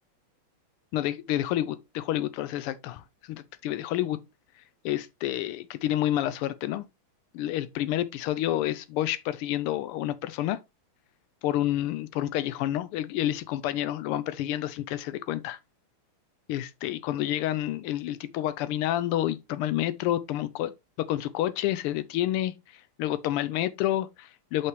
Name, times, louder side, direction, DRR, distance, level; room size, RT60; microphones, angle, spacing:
voice 1, 0.9-4.2 4.8-6.8 7.3-10.6 11.4-15.6 16.5-20.7 21.1-24.7, left 13 dB, 90° left, 1.5 m, -29 dB
6.3 x 5.8 x 3.1 m
omnidirectional pair, 2.4 m